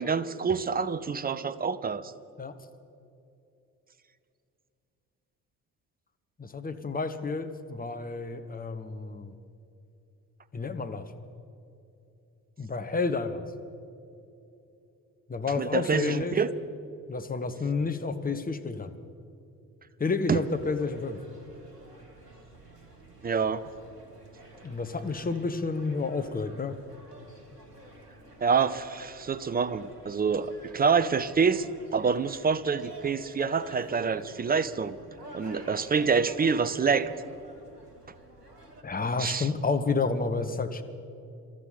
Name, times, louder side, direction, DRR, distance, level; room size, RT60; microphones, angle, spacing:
voice 1, 0.0-2.1 15.6-16.5 20.3-20.4 23.2-23.6 28.4-31.7 31.9-35.0 35.3-37.1 39.2-39.5, right 5 dB, 20° right, 14 dB, 0.6 m, -26 dB
voice 2, 6.4-9.3 10.5-11.1 12.6-13.4 15.3-16.4 17.1-18.9 20.0-21.2 24.6-26.7 38.8-40.8, left 4 dB, 20° left, 8 dB, 1.2 m, -30 dB
sound 1, 20.4-38.8, right 1 dB, 90° right, 1.2 m, -49 dB
24.5 x 13.5 x 4.2 m, 2.8 s
figure-of-eight pair, 45°, 46 cm